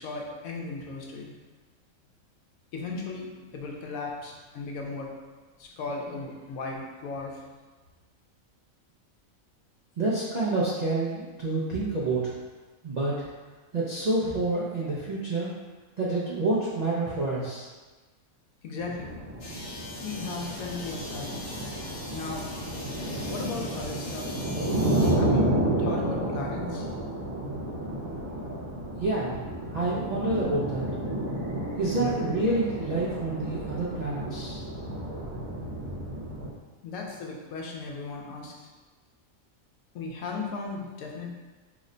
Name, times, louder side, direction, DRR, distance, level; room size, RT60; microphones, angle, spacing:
voice 1, 0.0-1.3 2.7-5.1 5.6-7.5 14.8-14.9 18.6-19.1 19.9-21.4 22.1-22.5 23.2-24.8 25.1-25.4 25.8-26.9 36.8-38.7 39.9-41.4, left 4 dB, 85° left, 0 dB, 1.0 m, -37 dB
voice 2, 10.0-12.3 12.8-13.2 13.7-15.5 16.0-17.6 29.0-29.4 29.7-30.9 31.8-34.6, right 2 dB, 65° right, -8 dB, 0.4 m, -28 dB
sound 1, 18.8-36.5, right 1 dB, 80° right, 1.2 m, -31 dB
sound 2, 19.4-25.1, left 2 dB, 55° left, 0.8 m, -42 dB
3.0 x 2.1 x 3.7 m, 1.3 s
omnidirectional pair, 1.4 m